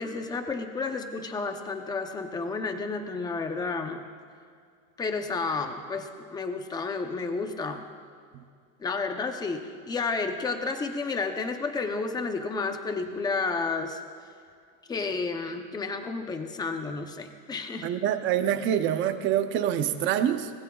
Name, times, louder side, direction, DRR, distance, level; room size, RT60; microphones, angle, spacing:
voice 1, 0.0-4.0 5.0-7.9 8.8-14.0 14.9-17.9, left 4 dB, 10° left, 6 dB, 0.7 m, -31 dB
voice 2, 17.8-20.5, right 10 dB, 30° right, 9 dB, 0.7 m, -26 dB
24.0 x 20.0 x 2.4 m, 2.3 s
supercardioid pair, 165°, 38 cm